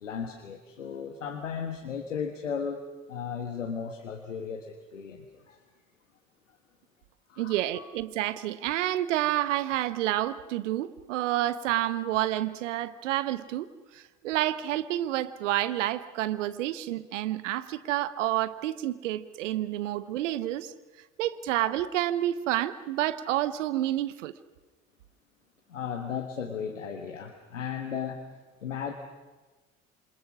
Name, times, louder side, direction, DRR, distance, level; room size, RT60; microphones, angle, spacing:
voice 1, 0.0-5.6 7.3-7.9 25.7-28.2 28.6-28.9, left 7 dB, 90° left, 3 dB, 1.6 m, -35 dB
voice 2, 7.4-13.7 13.9-20.7 21.2-24.3, right 14 dB, 80° right, 15 dB, 1.0 m, -29 dB
27.5 x 26.0 x 6.2 m, 1.2 s
figure-of-eight pair, 55°, 37 cm